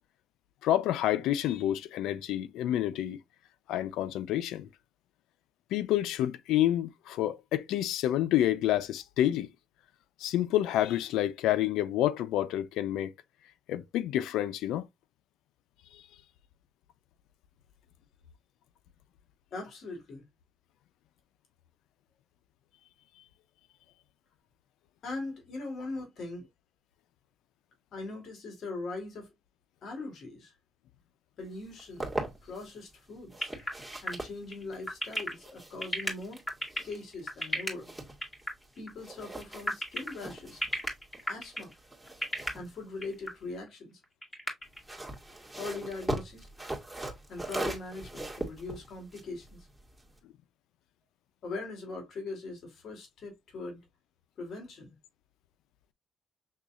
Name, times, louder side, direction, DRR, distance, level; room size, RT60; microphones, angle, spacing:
voice 1, 0.6-3.2 3.7-4.7 5.7-9.5 10.2-13.1 13.7-14.8 15.9-16.0, left 12 dB, 90° left, 0.5 m, -28 dB
voice 2, 19.5-20.2 25.0-26.5 27.9-29.3 29.8-30.5 31.4-32.1 32.4-36.4 36.8-37.9 38.8-40.6 41.3-41.7 42.5-44.0 45.6-46.5 47.3-49.7 51.4-53.8 54.4-54.9, left 3 dB, 65° left, 2.8 m, -41 dB
sound 1, 31.6-32.7 33.3-38.7 39.0-43.6 44.6-50.2, right 1 dB, 5° right, 1.9 m, -41 dB
sound 2, 33.4-37.7 38.2-38.5 38.8-38.9 39.3-40.1 40.6-41.7 42.1-42.5 43.0-43.3 43.7-43.8 44.0-44.8, left 1 dB, 15° left, 1.9 m, -32 dB
6.5 x 3.1 x 2.4 m
cardioid pair, 90°, 0 cm